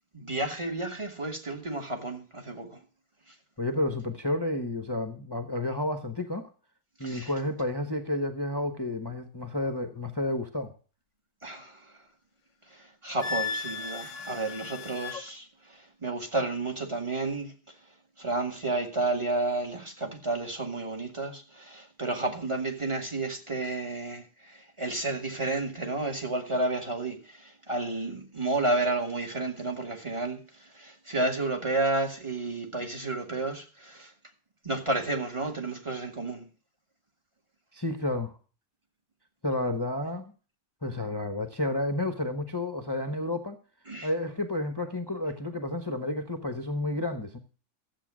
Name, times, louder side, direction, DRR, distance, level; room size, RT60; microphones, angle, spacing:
voice 1, 0.1-2.8 3.3-3.4 7.0-7.3 11.4-12.0 12.7-34.1 34.6-36.5 43.9-44.1, right 2 dB, 20° right, 2.0 m, -31 dB
voice 2, 3.6-6.5 7.0-10.7 37.7-38.3 39.4-40.3 40.8-43.6 44.0-47.4, left 1 dB, 20° left, 0.9 m, -31 dB
Wind instrument woodwind instrument, 13.2-15.2, left 5 dB, 55° left, 1.1 m, -35 dB
13.0 x 8.1 x 6.2 m
omnidirectional pair, 1.8 m